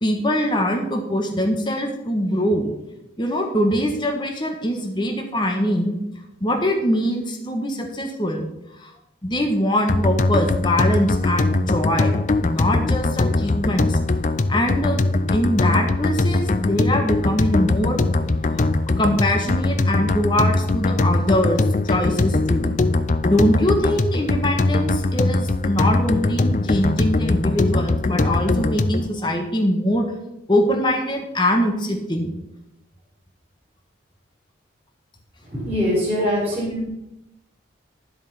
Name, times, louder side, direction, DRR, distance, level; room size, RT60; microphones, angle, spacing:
voice 1, 0.0-2.7 3.2-6.0 6.4-8.4 8.8-8.9 9.2-14.0 14.5-18.0 18.5-18.7 19.0-22.7 23.2-30.1 30.5-32.3 36.2-36.3, equal, 25° left, 3 dB, 1.4 m, -22 dB
sound 1, 9.9-29.1, left 2 dB, 40° left, 0.5 m, -21 dB
voice 2, 35.4-36.8, left 1 dB, 10° right, -9 dB, 4.6 m, -23 dB
11.0 x 7.8 x 5.7 m, 0.87 s
head